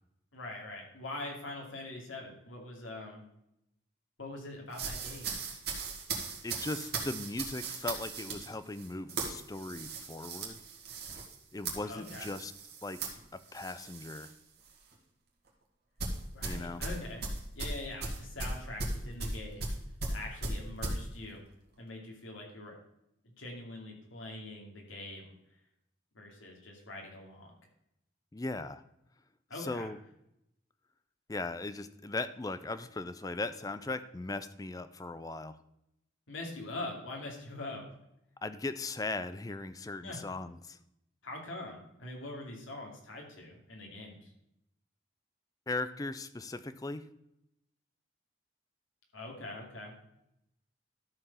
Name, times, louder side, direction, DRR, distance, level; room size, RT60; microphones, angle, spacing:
voice 1, 0.3-3.2 4.2-5.3 11.8-12.3 16.3-17.3 17.5-19.7 20.1-21.4 21.8-22.7 23.4-25.3 26.1-27.5 29.5-29.9 36.3-37.8 40.0-40.2 41.2-44.3 49.1-50.0, left 2 dB, 80° left, 0 dB, 2.7 m, -43 dB
sound 1, 4.7-14.3 14.7-14.9 16.0-21.0, right 3 dB, 50° right, 2.1 m, -38 dB
voice 2, 6.4-10.6 11.5-12.5 12.8-14.3 16.4-16.8 28.3-28.8 29.6-30.0 31.3-35.6 38.4-40.8 45.7-47.0, left 2 dB, 20° left, 12 dB, 0.4 m, -38 dB
13.0 x 4.8 x 5.5 m, 0.81 s
head